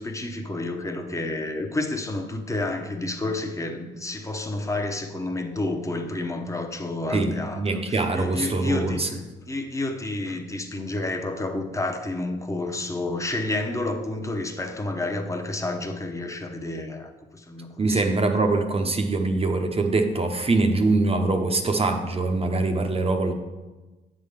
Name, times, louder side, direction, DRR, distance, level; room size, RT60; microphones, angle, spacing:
voice 1, 0.0-9.2 9.5-18.2, left 2 dB, 15° left, 5 dB, 0.9 m, -30 dB
voice 2, 7.1-9.1 17.8-23.3, right 3 dB, 30° right, 5 dB, 0.8 m, -23 dB
7.7 x 3.8 x 6.6 m, 1.2 s
cardioid pair, 90°, 20 cm